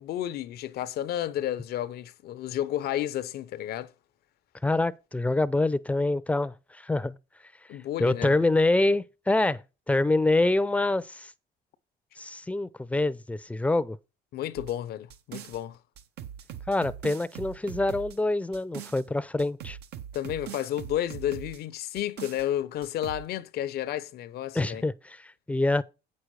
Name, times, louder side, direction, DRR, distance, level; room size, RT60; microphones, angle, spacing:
voice 1, 0.0-3.9 7.7-8.4 14.3-15.8 20.1-24.8, left 12 dB, 70° left, 0.8 m, -32 dB
voice 2, 4.6-7.2 8.0-11.3 12.2-14.0 16.7-19.8 24.5-25.8, left 2 dB, 10° left, 0.6 m, -26 dB
sound 1, 14.6-15.6 16.0-19.0 19.4-21.6 22.0-22.5 22.8-23.2, right 10 dB, 75° right, 1.0 m, -41 dB
8.4 x 6.4 x 4.8 m
cardioid pair, 110°, 17 cm